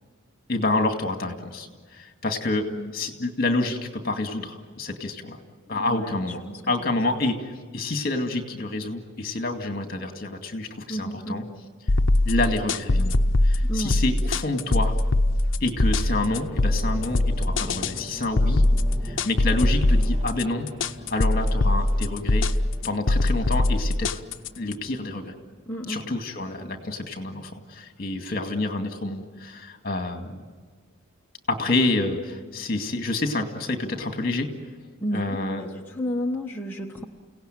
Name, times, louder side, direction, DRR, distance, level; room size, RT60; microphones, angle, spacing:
voice 1, 0.5-5.4 5.7-11.4 12.3-14.9 15.6-18.6 19.0-20.7 21.1-22.5 22.8-24.2 24.6-25.3 25.9-30.4 31.5-34.5 35.1-35.8, left 2 dB, 45° left, 5 dB, 2.2 m, -28 dB
voice 2, 5.7-6.1 6.5-6.6 10.9-11.5 13.6-14.0 25.7-26.1 35.0-37.0, equal, 10° left, -2 dB, 1.2 m, -32 dB
sound 1, 11.9-24.7, left 1 dB, 65° left, 0.7 m, -22 dB
sound 2, 15.7-25.7 26.0-26.2, left 1 dB, 30° right, 1.6 m, -40 dB
30.0 x 17.5 x 9.2 m, 1.5 s
head